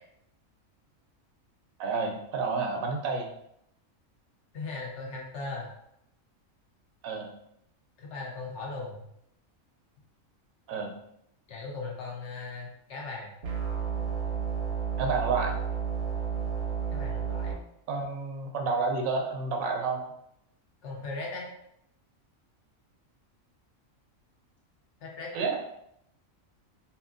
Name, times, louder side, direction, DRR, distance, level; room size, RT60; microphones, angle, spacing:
voice 1, 1.8-3.3 7.0-7.3 10.7-10.9 15.0-15.5 17.9-20.0 25.3-25.6, right 4 dB, 85° right, 1 dB, 1.0 m, -29 dB
voice 2, 4.5-5.7 8.0-9.1 11.5-13.3 16.9-17.6 20.8-21.5 25.0-25.3, left 3 dB, 65° left, -2 dB, 1.0 m, -38 dB
sound 1, 13.4-17.5, right 7 dB, 60° right, 0.8 m, -31 dB
2.8 x 2.7 x 2.4 m, 0.77 s
omnidirectional pair, 1.4 m